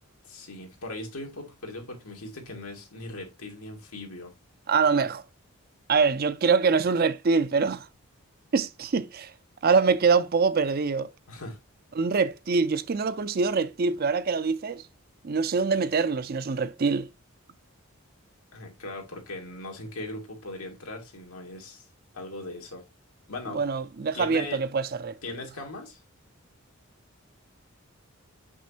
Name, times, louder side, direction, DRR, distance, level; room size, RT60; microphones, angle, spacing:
voice 1, 0.2-4.3 11.3-11.6 18.5-21.9 22.1-22.8 23.3-23.6 24.1-24.6 25.2-26.0, left 2 dB, 85° left, 2.1 m, -39 dB
voice 2, 4.7-5.2 5.9-7.9 8.5-9.3 9.6-11.1 11.9-14.8 15.2-17.1 23.5-25.2, right 5 dB, 45° right, 0.4 m, -24 dB
6.2 x 6.1 x 2.8 m
head